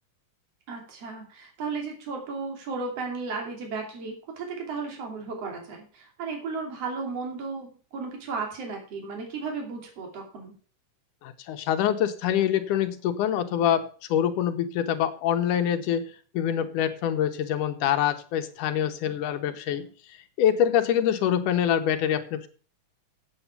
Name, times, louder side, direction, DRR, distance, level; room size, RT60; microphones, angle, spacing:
voice 1, 0.7-10.5, right 4 dB, 50° right, 2 dB, 3.8 m, -34 dB
voice 2, 11.2-22.5, left 10 dB, 85° left, 7 dB, 2.5 m, -25 dB
8.6 x 8.1 x 6.7 m, 0.41 s
omnidirectional pair, 3.6 m